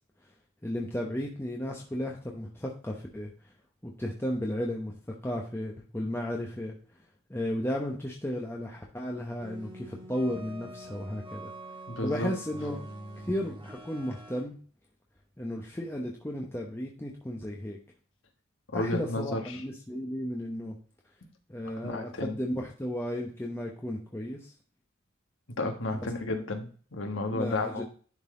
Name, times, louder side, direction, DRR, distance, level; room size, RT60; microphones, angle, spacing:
voice 1, 0.6-3.3 3.8-4.9 5.2-6.7 7.3-11.5 12.0-12.8 13.2-14.6 15.4-17.8 18.7-20.7 21.5-24.5 27.3-27.8, left 1 dB, 10° left, -1 dB, 0.9 m, -34 dB
sound 1, 9.4-14.4, right 1 dB, 25° right, 1.9 m, -45 dB
voice 2, 11.9-12.3 18.7-19.6 21.8-22.4 25.6-27.8, left 2 dB, 65° left, 4 dB, 1.4 m, -32 dB
11.0 x 4.0 x 3.7 m, 0.41 s
head